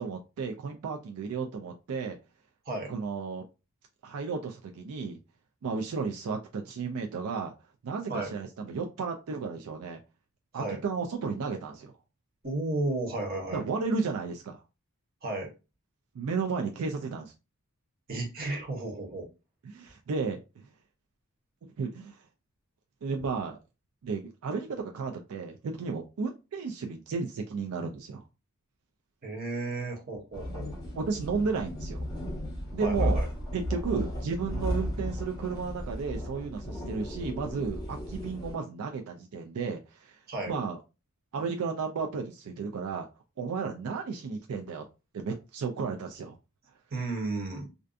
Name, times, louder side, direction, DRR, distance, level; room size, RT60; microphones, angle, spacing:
voice 1, 0.0-2.2 2.9-3.4 4.0-5.2 5.6-7.5 7.8-10.0 10.5-11.9 13.5-14.6 16.1-17.3 19.6-20.6 21.8-22.2 23.0-23.6 24.0-28.2 30.9-32.1 32.7-33.2 33.5-40.2 40.5-40.8 41.3-43.1 43.4-44.8 45.1-46.4, right 5 dB, 80° right, 3 dB, 0.4 m, -33 dB
voice 2, 12.4-13.6 15.2-15.5 18.1-19.3 29.2-30.7 32.8-33.2 40.3-40.5 46.9-47.7, right 2 dB, 45° right, 1 dB, 0.9 m, -33 dB
sound 1, 30.3-38.6, equal, 15° left, 0.8 m, -34 dB
2.5 x 2.2 x 2.4 m, 0.28 s
head